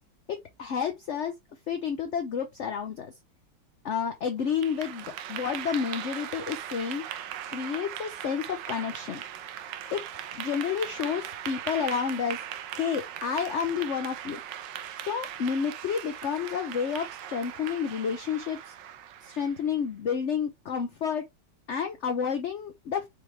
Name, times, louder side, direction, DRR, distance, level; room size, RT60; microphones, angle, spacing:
voice 1, 0.3-1.3 1.7-3.1 3.8-7.0 7.5-9.2 9.9-10.0 10.3-12.4 12.7-14.4 15.0-18.7 19.2-21.2 21.7-23.1, left 7 dB, 60° left, 0.7 m, -30 dB
Clapping / Applause, 4.4-19.7, right 10 dB, 80° right, 1.3 m, -39 dB
5.0 x 3.2 x 3.2 m
omnidirectional pair, 2.0 m